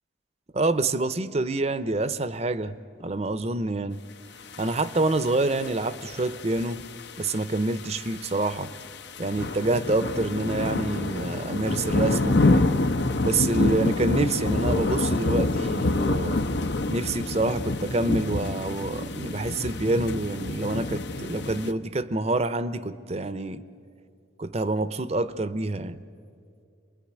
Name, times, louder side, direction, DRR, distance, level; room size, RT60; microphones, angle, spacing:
voice 1, 0.5-4.0 4.6-6.8 7.2-8.7 9.2-12.7 13.2-16.4 16.9-23.6 24.4-26.0, right 2 dB, 35° right, 0.7 m, -27 dB
sound 1, 4.5-21.7, left 2 dB, 75° left, 0.9 m, -28 dB
28.0 x 22.0 x 9.6 m
head